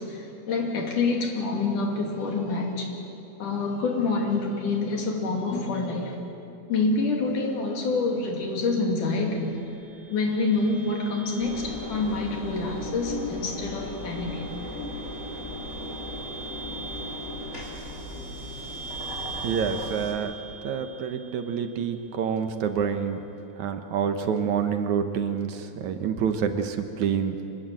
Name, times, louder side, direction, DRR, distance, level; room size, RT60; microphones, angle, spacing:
voice 1, 0.0-2.9 3.4-6.2 6.7-9.6 10.1-14.5 18.1-18.4, left 3 dB, 90° left, 1 dB, 4.2 m, -27 dB
sound 1, 9.1-22.1, right 5 dB, 70° left, 7.9 m, -43 dB
Engine, 11.4-20.1, left 2 dB, 25° left, 4.2 m, -37 dB
voice 2, 19.4-20.3 20.6-23.2 23.6-27.4, right 7 dB, 70° right, 7 dB, 2.6 m, -27 dB
25.0 x 20.5 x 7.8 m, 2.8 s
omnidirectional pair, 3.5 m